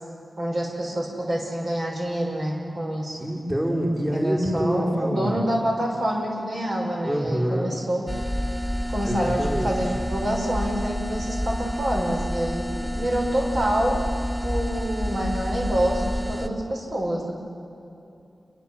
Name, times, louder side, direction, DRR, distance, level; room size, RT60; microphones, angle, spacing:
voice 1, 0.4-3.3 4.1-8.1 8.9-14.0 14.4-17.3, right 1 dB, 65° right, -1 dB, 6.2 m, -27 dB
voice 2, 3.2-5.4 7.0-7.7 9.1-9.7, equal, 25° right, -3 dB, 5.2 m, -25 dB
sound 1, 8.1-16.5, equal, 10° right, 2.0 m, -29 dB
29.0 x 22.0 x 7.8 m, 2.8 s
wide cardioid pair, 70°, 0 cm